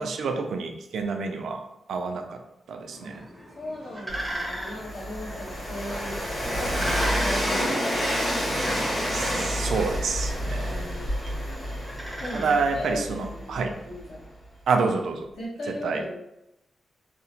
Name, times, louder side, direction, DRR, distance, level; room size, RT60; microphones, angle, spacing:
voice 1, 0.0-1.6 1.9-2.4 2.7-3.3 9.1-10.8 12.3-13.7 14.7-15.3 15.8-16.0, right 4 dB, 90° right, 5 dB, 0.3 m, -28 dB
sound 1, 2.9-13.2, right 1 dB, ahead, 0.6 m, -39 dB
voice 2, 3.5-8.8 10.7-11.4 12.2-14.2 15.4-16.2, equal, 75° left, -6 dB, 1.1 m, -38 dB
Train, 4.1-13.9, equal, 50° left, 1.5 m, -29 dB
2.8 x 2.0 x 2.8 m, 0.87 s
wide cardioid pair, 125°, 0 cm